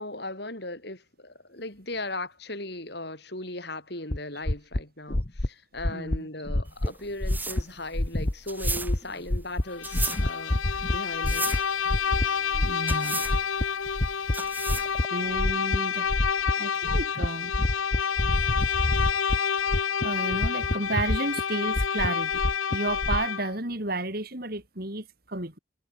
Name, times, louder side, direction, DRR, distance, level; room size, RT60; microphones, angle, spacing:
voice 1, 0.0-11.5, left 2 dB, 55° left, 6.5 m, -37 dB
sound 1, 4.1-4.2 4.5-4.8 5.1-5.5 5.8-6.2 6.5-6.9 7.2-7.6 7.9-8.3 8.6-9.0 9.3-9.6 9.9-11.0 11.2-11.6 11.9-12.3 12.5-13.0 13.3-14.3 14.7-15.0 15.4-15.8 16.1-16.5 16.8-17.3 17.5-19.4 19.7-20.0 20.3-21.4 21.8-23.2, left 1 dB, 35° left, 1.2 m, -26 dB
voice 2, 5.9-6.3 12.0-13.3 15.1-16.3 16.6-17.5 19.2-19.4 20.0-22.4 22.7-25.6, right 2 dB, 50° right, 4.0 m, -32 dB
sound 2, 6.7-15.1, right 3 dB, 10° right, 4.4 m, -36 dB
Bowed string instrument, 9.7-23.6, left 7 dB, 90° left, 1.0 m, -29 dB
head